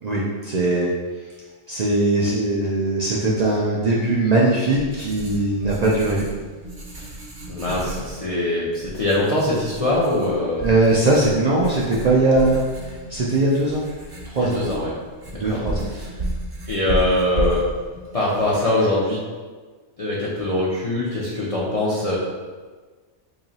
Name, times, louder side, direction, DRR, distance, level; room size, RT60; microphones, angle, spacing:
voice 1, 0.0-0.9 1.7-6.2 10.6-12.6 13.1-13.9 14.3-14.6 15.3-15.8, right 2 dB, 70° right, -5 dB, 0.3 m, -20 dB
Writing, 4.3-19.1, right 1 dB, 40° right, 0.8 m, -33 dB
voice 2, 7.5-10.7 14.4-14.9 15.4-15.6 15.9-16.1 16.7-17.7 18.1-19.2 20.0-22.2, left 1 dB, 45° left, -7 dB, 0.5 m, -22 dB
3.0 x 2.8 x 4.0 m, 1.4 s
omnidirectional pair, 1.3 m